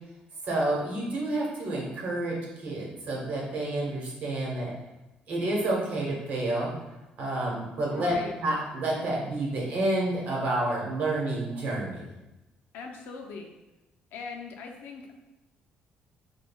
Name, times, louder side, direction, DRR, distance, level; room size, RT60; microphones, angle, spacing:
voice 1, 0.4-4.7 5.3-6.7 7.2-12.0, right 1 dB, 60° right, -3 dB, 1.0 m, -29 dB
voice 2, 7.9-8.3 12.7-13.5 14.1-15.1, left 5 dB, 85° left, 2 dB, 0.5 m, -40 dB
5.1 x 2.3 x 2.2 m, 1.0 s
cardioid pair, 135°, 3 cm